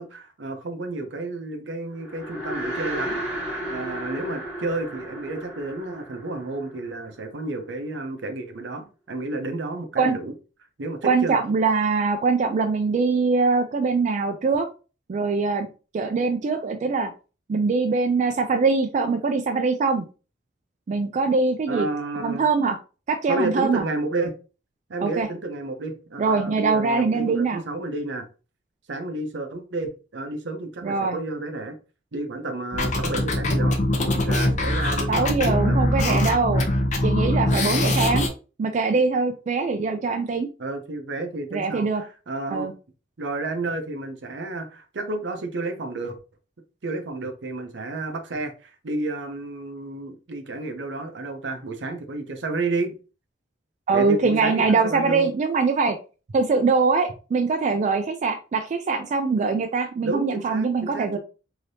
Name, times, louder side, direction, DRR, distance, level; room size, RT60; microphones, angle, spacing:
voice 1, 0.0-10.3 10.8-11.4 21.7-22.5 23.3-24.3 24.9-28.3 28.9-31.8 32.1-36.4 40.6-42.7 43.2-46.2 46.8-52.9 53.9-55.3 60.0-61.2, right 2 dB, 75° right, 0.6 m, -31 dB
sound 1, 2.0-7.4, right 1 dB, 5° right, 1.2 m, -33 dB
voice 2, 11.0-14.7 15.1-15.7 15.9-17.1 17.5-20.0 20.9-21.9 22.2-22.8 23.1-23.8 25.0-25.3 26.2-27.6 30.8-31.2 35.1-36.7 37.0-38.3 38.6-40.5 41.5-42.0 42.5-42.7 53.9-56.0 56.3-61.2, right 4 dB, 40° right, 0.3 m, -22 dB
sound 2, 32.7-38.3, left 1 dB, 40° left, 0.6 m, -22 dB
3.3 x 2.8 x 2.6 m
head